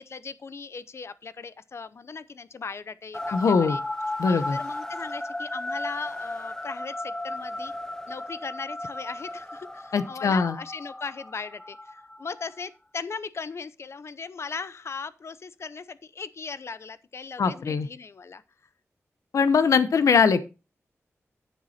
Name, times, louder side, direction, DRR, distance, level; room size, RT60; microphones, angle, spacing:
voice 1, 0.0-3.8 4.3-7.7 8.1-18.4, left 5 dB, 55° left, 0.7 m, -38 dB
sound 1, 3.1-12.6, left 1 dB, 10° left, 0.5 m, -35 dB
voice 2, 3.3-3.8 4.2-4.6 9.9-10.6 17.4-17.9 19.3-20.4, left 5 dB, 85° left, 0.8 m, -21 dB
9.3 x 7.3 x 4.1 m
wide cardioid pair, 85°, 5 cm